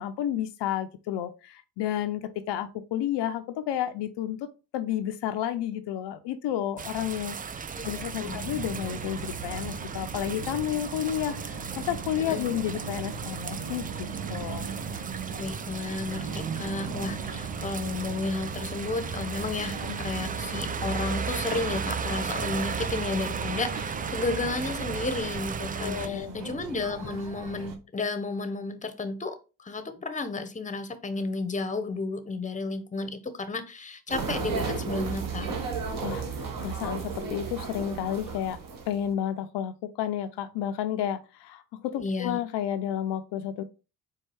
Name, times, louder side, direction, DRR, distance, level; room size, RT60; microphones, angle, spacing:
voice 1, 0.0-13.9 14.3-14.7 19.8-20.0 25.8-26.4 36.0-38.6 38.9-43.6, left 10 dB, 75° left, 0.6 m, -31 dB
sound 1, 6.8-26.1, right 6 dB, 20° right, 0.3 m, -35 dB
voice 2, 7.7-8.5 12.3-12.5 15.3-35.6 42.0-42.4, left 3 dB, 20° left, 0.8 m, -33 dB
sound 2, 7.8-27.8, right 5 dB, 85° right, 0.9 m, -39 dB
sound 3, 34.1-39.1, right 5 dB, 50° right, 1.3 m, -33 dB
4.6 x 2.3 x 4.5 m
supercardioid pair, 65°, 42 cm